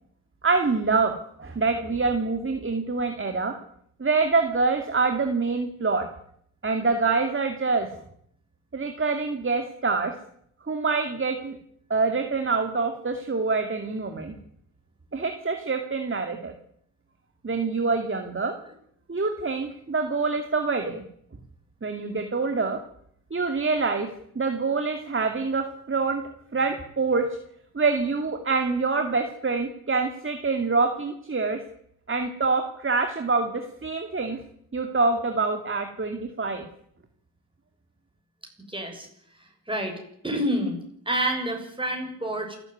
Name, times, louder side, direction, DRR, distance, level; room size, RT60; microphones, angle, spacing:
voice 1, 0.4-1.1 1.4-3.5 4.0-6.1 6.6-7.9 8.7-10.1 10.7-11.6 11.9-14.3 15.1-16.5 17.4-18.5 19.1-21.0 21.8-22.8 23.3-24.1 24.4-26.2 26.5-27.3 27.7-31.6 32.1-34.4 34.7-36.7, right 4 dB, 30° right, 5 dB, 2.5 m, -25 dB
voice 2, 38.7-39.1 39.7-39.9 40.2-40.8 41.1-42.5, right 1 dB, 10° right, 2 dB, 7.4 m, -28 dB
28.0 x 13.0 x 9.4 m, 0.71 s
wide cardioid pair, 100°, 42 cm